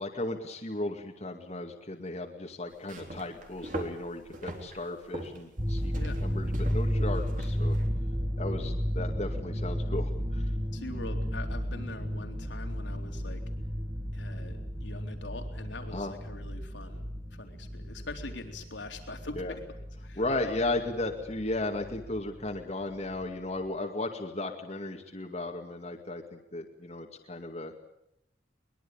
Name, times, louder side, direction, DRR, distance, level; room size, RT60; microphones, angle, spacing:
voice 1, 0.0-5.9 6.2-7.8 8.4-10.5 15.9-16.1 19.4-19.5 20.2-27.7, left 2 dB, 35° left, 2 dB, 2.2 m, -35 dB
sound 1, 2.7-7.9, right 1 dB, 45° right, 3.8 m, -42 dB
sound 2, 5.6-22.6 22.9-23.2, equal, 25° right, 2.6 m, -33 dB
voice 2, 10.7-13.4 14.1-17.0 17.3-19.6 20.0-20.9, left 2 dB, 85° left, 4 dB, 3.8 m, -43 dB
23.0 x 21.5 x 8.9 m, 0.78 s
head